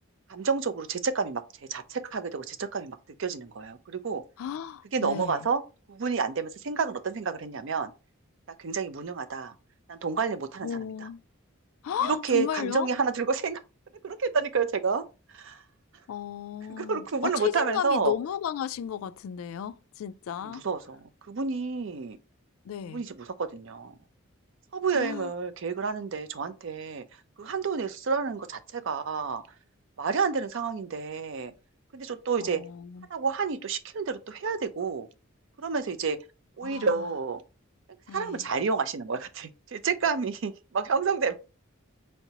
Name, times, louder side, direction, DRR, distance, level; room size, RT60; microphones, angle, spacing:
voice 1, 0.3-1.4 1.7-4.2 4.9-5.6 5.9-7.9 8.6-9.5 9.9-10.7 12.0-13.6 14.0-15.0 15.3-15.6 16.8-18.1 20.4-21.0 21.3-22.2 22.9-23.9 24.7-27.1 27.4-29.4 30.0-31.5 31.9-32.6 33.1-35.1 35.6-36.2 36.6-37.4 38.1-41.3, right 5 dB, 60° right, 0.5 m, -29 dB
voice 2, 4.4-5.5 10.6-11.2 11.8-12.9 16.1-20.7 22.6-23.0 24.9-25.3 32.4-33.1 36.6-37.0 38.1-38.5, left 9 dB, 75° left, 0.3 m, -34 dB
4.4 x 2.8 x 2.9 m
head